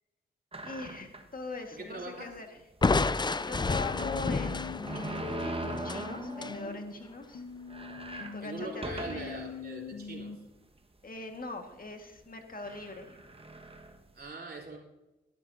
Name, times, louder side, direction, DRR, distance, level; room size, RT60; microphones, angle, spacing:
sound 1, 0.5-1.4 1.9-2.0 2.3-2.4 4.0-6.9 7.2-7.3 7.6-9.5 10.1-10.2 11.1-11.4 12.2-12.3 12.6-14.2, right 2 dB, 30° right, 1.5 m, -40 dB
voice 1, 0.6-2.5 3.4-4.8 5.4-7.5 8.3-9.4 11.0-13.2, left 3 dB, 45° left, 4 dB, 1.8 m, -41 dB
voice 2, 1.7-2.4 8.4-10.4 14.1-14.8, right 3 dB, 50° right, -1 dB, 3.5 m, -42 dB
Crushing, 2.8-6.6, left 3 dB, 20° left, 0.5 m, -30 dB
sound 2, 3.9-6.9 7.3-10.4, left 6 dB, 80° left, 1.1 m, -42 dB
13.0 x 12.0 x 2.7 m, 1.0 s
supercardioid pair, 45°, 20 cm